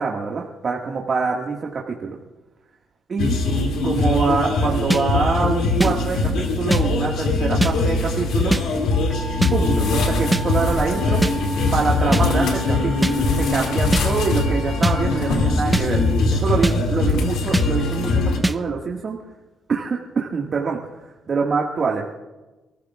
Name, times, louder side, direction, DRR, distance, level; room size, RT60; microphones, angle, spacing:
voice 1, 0.0-2.2 3.1-3.4 3.8-8.6 9.5-11.2 11.7-16.0 16.3-19.2 19.7-20.8 21.3-22.0, right 5 dB, 45° right, -2 dB, 1.9 m, -25 dB
sound 1, 3.2-18.4, left 3 dB, 80° left, 2.4 m, -21 dB
sound 2, 4.9-5.0 5.8-5.9 6.7-6.8 7.6-7.7 8.5-8.6 9.4-9.5 10.3-10.4 11.2-11.3 12.1-12.2 13.0-13.1 13.9-14.0 14.8-14.9 15.7-15.9 16.6-16.8 17.5-17.7 18.4-18.6, right 1 dB, 10° right, 0.7 m, -20 dB
Musical instrument, 9.1-16.7, right 1 dB, 15° left, 3.5 m, -37 dB
27.5 x 14.5 x 2.5 m, 1.1 s
cardioid pair, 90°, 0 cm